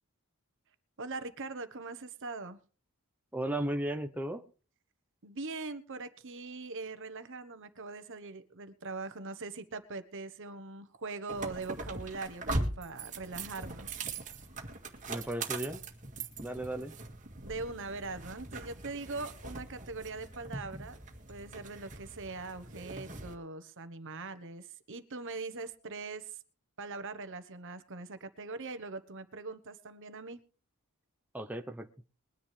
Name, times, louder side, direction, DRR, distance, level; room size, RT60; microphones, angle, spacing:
voice 1, 1.0-2.6 5.2-14.1 17.4-21.0 21.3-26.4 26.8-30.4, right 3 dB, 60° right, 1.2 m, -41 dB
voice 2, 3.3-4.4 15.1-15.8 16.2-16.9 31.3-31.9, right 1 dB, 5° right, 0.8 m, -35 dB
sound 1, 11.3-23.3, right 2 dB, 35° right, 2.1 m, -41 dB
21.5 x 10.0 x 3.4 m
head